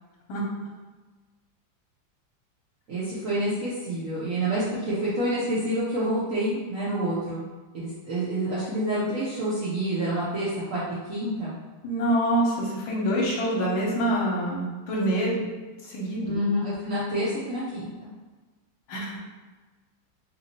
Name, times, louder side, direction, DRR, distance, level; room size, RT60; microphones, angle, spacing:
voice 1, 2.9-7.5 7.7-11.6 16.3-17.9, right 1 dB, 85° right, -9 dB, 0.7 m, -28 dB
voice 2, 11.8-15.5 15.8-16.4 18.9-19.2, right 1 dB, 75° left, -3 dB, 1.5 m, -26 dB
3.3 x 2.9 x 2.8 m, 1.3 s
omnidirectional pair, 2.3 m